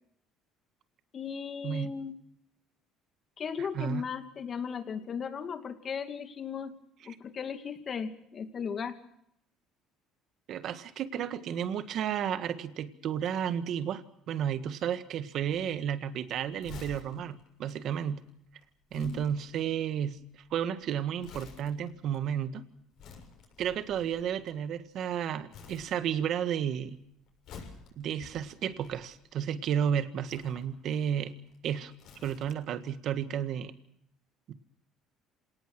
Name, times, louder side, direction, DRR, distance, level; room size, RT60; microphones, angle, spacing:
voice 1, 1.1-2.2 3.4-6.8 7.0-9.0 18.9-19.3, left 6 dB, 40° left, 8 dB, 2.4 m, -36 dB
voice 2, 1.6-2.0 3.6-4.1 10.5-18.3 18.9-20.2 20.5-22.6 23.6-27.0 28.0-31.4 31.6-31.9 32.2-33.7 34.5-34.6, right 9 dB, 60° right, 10 dB, 1.8 m, -32 dB
Crumpling crinkling, 15.4-25.1 25.5-26.5 26.7-29.5 30.2-32.8 33.1-33.2, left 5 dB, 65° left, 7.0 m, -52 dB
27.0 x 18.5 x 6.1 m, 0.74 s
cardioid pair, 105°, 0 cm